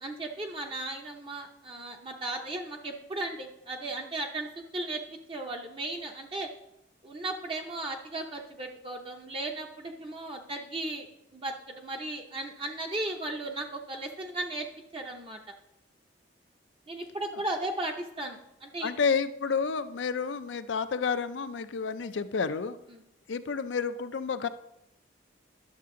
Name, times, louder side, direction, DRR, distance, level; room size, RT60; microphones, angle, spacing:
voice 1, 0.0-4.5 4.7-6.5 7.0-11.1 11.3-14.7 14.9-15.4 16.9-18.9 22.9-23.0, right 2 dB, 30° right, 2 dB, 0.7 m, -36 dB
voice 2, 18.8-22.8 23.3-24.5, left 5 dB, 75° left, 11 dB, 0.5 m, -30 dB
11.0 x 6.7 x 3.7 m, 0.86 s
head